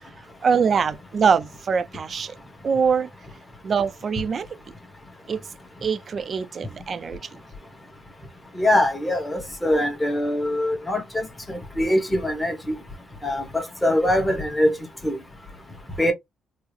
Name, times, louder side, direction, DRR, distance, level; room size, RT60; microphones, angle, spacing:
voice 1, 0.4-2.3 2.6-3.1 3.6-4.5 5.3-5.4 5.8-7.2, right 6 dB, 45° right, 0.4 m, -23 dB
voice 2, 8.6-12.7 13.2-14.7 15.0-15.2 16.0-16.1, left 1 dB, 10° left, 1.1 m, -23 dB
3.6 x 2.0 x 3.2 m
cardioid pair, 90°, 0 cm